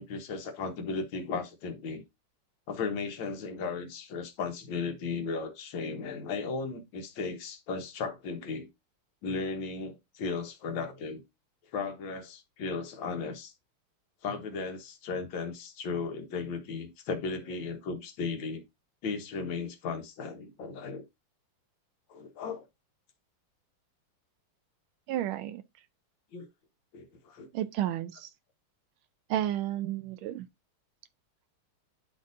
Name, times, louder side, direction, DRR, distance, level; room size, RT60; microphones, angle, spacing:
voice 1, 0.0-2.0 2.7-8.7 9.2-11.2 11.7-13.5 14.2-18.6 19.0-21.0 22.1-22.6 26.3-26.5 26.9-27.5, left 4 dB, 65° left, 1.8 m, -36 dB
voice 2, 25.1-25.6 27.5-28.3 29.3-30.5, right 12 dB, 80° right, 1.3 m, -32 dB
10.5 x 4.0 x 2.6 m
omnidirectional pair, 2.4 m